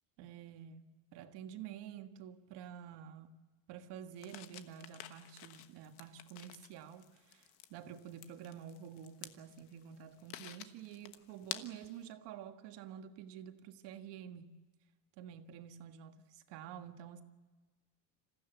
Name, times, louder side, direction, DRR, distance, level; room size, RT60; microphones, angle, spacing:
voice 1, 0.2-3.4 3.7-14.6 15.2-17.2, right 9 dB, 60° right, 1.7 m, -49 dB
sound 1, 4.2-12.0, left 13 dB, 75° left, 1.3 m, -51 dB
27.0 x 15.0 x 8.1 m
cardioid pair, 155°, 48 cm